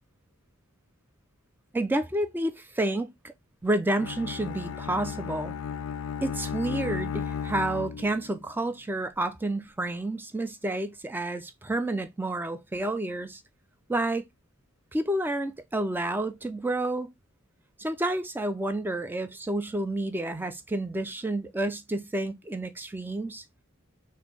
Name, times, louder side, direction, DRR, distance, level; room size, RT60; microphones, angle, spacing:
voice 1, 1.7-3.1 3.6-5.6 6.2-13.4 13.9-14.3 14.9-17.1 17.8-23.4, right 1 dB, 10° right, 0.4 m, -30 dB
Bowed string instrument, 4.0-8.4, left 7 dB, 70° left, 0.3 m, -34 dB
4.2 x 2.6 x 3.2 m
head